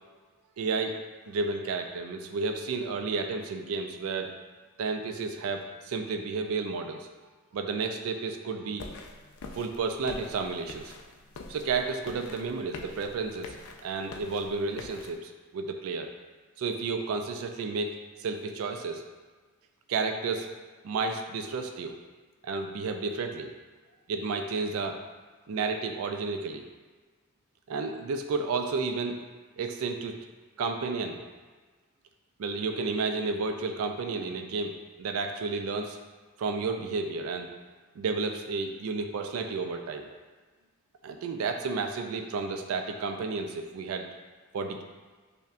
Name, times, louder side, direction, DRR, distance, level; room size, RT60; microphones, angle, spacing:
voice 1, 0.6-0.9 1.3-4.3 4.8-7.1 7.5-8.9 9.5-10.9 11.5-13.5 13.8-16.1 16.6-19.0 19.9-20.5 20.8-21.9 22.4-23.5 24.1-25.0 25.5-26.6 27.7-29.2 29.6-30.2 30.6-31.2 32.4-36.0 36.4-37.5 38.0-40.1 41.0-44.0 44.5-44.8, right 4 dB, 90° right, 5 dB, 0.3 m, -31 dB
sound 1, 8.8-15.2, left 3 dB, 85° left, 0.4 m, -45 dB
5.3 x 2.1 x 2.5 m, 1.4 s
head